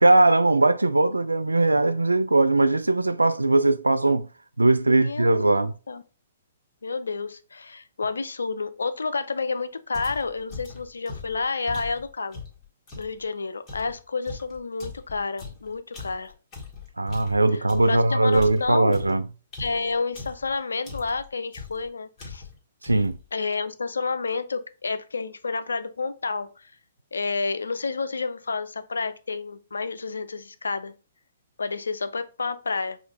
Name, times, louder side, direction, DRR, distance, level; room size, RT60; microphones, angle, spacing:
voice 1, 0.0-4.3 4.6-5.7 17.0-19.2 22.8-23.2, right 2 dB, 90° right, 0.3 m, -20 dB
voice 2, 4.7-6.0 6.8-12.4 13.0-16.3 17.5-19.0 19.6-22.4 23.3-26.7 27.1-30.9 31.6-33.0, left 4 dB, 80° left, 0.4 m, -30 dB
sound 1, 9.9-13.2 13.7-18.0 18.3-20.5 20.9-21.3 21.5-21.9 22.2-22.6 22.8-23.2, left 4 dB, 25° left, 1.6 m, -40 dB
4.8 x 2.5 x 3.3 m
figure-of-eight pair, 120°, 0 cm